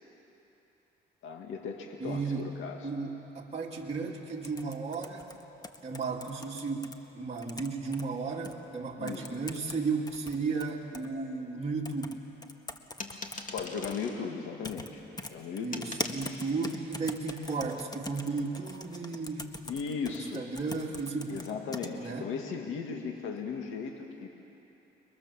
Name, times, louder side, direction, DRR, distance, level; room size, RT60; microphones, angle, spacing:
voice 1, 1.2-2.9 9.0-9.4 13.5-15.0 15.3-16.0 19.6-20.5 21.3-24.3, left 5 dB, 80° left, 2 dB, 2.2 m, -37 dB
voice 2, 2.0-2.5 2.8-5.3 5.8-12.2 15.6-19.5 20.3-21.4 22.0-22.4, right 4 dB, 30° right, -2 dB, 2.8 m, -34 dB
sound 1, 4.4-6.9 7.4-8.0 8.4-8.5 9.1-9.8 10.1-11.1 11.8-12.1 12.4-13.9 14.6-14.9 15.2-21.9, left 2 dB, 20° left, 1.5 m, -41 dB
sound 2, 13.0-14.2 15.7-16.2, left 3 dB, 40° left, 2.5 m, -41 dB
30.0 x 22.5 x 7.3 m, 3.0 s
cardioid pair, 90°, 20 cm